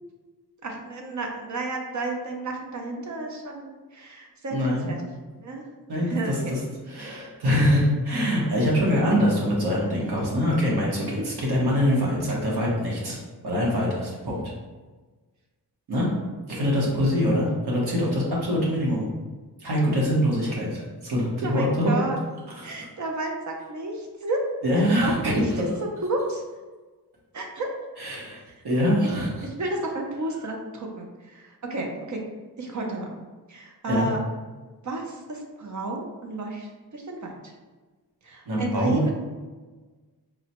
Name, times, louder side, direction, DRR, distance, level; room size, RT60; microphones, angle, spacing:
voice 1, 0.6-5.0 5.4-5.6 6.0-6.5 11.1-11.3 21.4-22.2 22.6-24.4 25.0-25.7 26.0-26.4 27.3-27.7 29.4-32.2 32.6-33.2 33.5-34.2 34.8-37.5 38.2-39.1, right 2 dB, 50° right, 1 dB, 0.5 m, -32 dB
voice 2, 4.5-4.9 5.9-6.6 6.9-14.4 15.9-16.1 16.5-19.1 19.6-21.9 22.6-22.7 24.6-25.4 28.0-28.4 28.6-29.3 33.9-34.1 38.5-39.0, equal, 70° right, -4 dB, 1.1 m, -24 dB
3.8 x 2.1 x 2.9 m, 1.3 s
wide cardioid pair, 115°, 40 cm